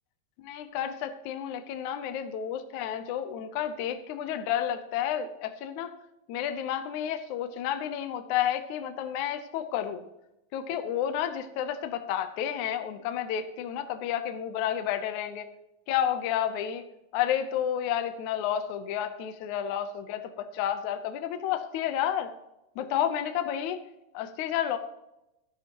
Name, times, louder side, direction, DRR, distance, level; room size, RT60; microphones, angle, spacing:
voice 1, 0.4-5.9 6.3-10.0 10.5-15.5 15.9-16.8 17.1-22.3 22.8-23.8 24.1-24.8, left 10 dB, 70° left, 9 dB, 2.0 m, -31 dB
15.5 x 11.0 x 2.9 m, 0.91 s
omnidirectional pair, 4.0 m